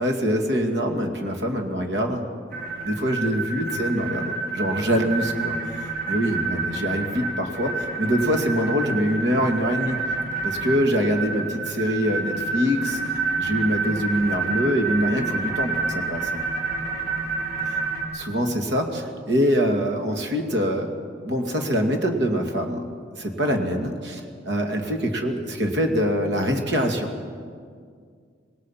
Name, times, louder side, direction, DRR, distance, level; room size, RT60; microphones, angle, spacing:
voice 1, 0.0-2.3 2.8-10.0 10.4-13.0 13.4-16.4 18.1-20.9 21.2-22.8 23.2-27.1, equal, 70° right, 3 dB, 2.4 m, -24 dB
sound 1, 2.5-18.0, right 4 dB, 55° right, 5.2 m, -28 dB
26.0 x 19.0 x 5.8 m, 2.1 s
head